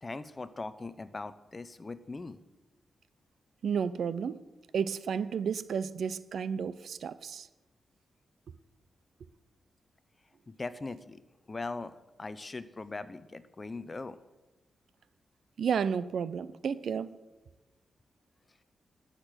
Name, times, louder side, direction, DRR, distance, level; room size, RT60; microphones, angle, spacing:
voice 1, 0.0-2.4 10.5-11.2 11.5-14.2, left 3 dB, 25° left, 14 dB, 0.7 m, -40 dB
voice 2, 3.6-4.4 4.7-7.5 15.6-17.2, right 7 dB, 70° right, 16 dB, 0.6 m, -32 dB
12.5 x 6.6 x 9.1 m, 1.1 s
cardioid pair, 105°, 0 cm